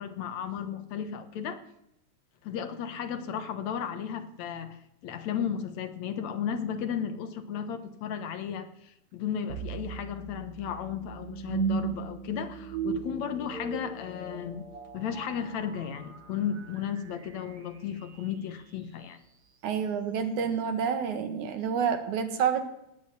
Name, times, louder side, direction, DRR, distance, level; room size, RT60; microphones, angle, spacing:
voice 1, 0.0-1.6 2.4-4.8 5.0-14.7 14.9-19.2, left 8 dB, 70° left, 9 dB, 2.5 m, -34 dB
sound 1, 9.5-18.6, right 6 dB, 50° right, 1.3 m, -37 dB
voice 2, 19.6-22.7, right 7 dB, 85° right, 8 dB, 3.1 m, -28 dB
18.5 x 9.0 x 8.4 m, 0.81 s
omnidirectional pair, 3.4 m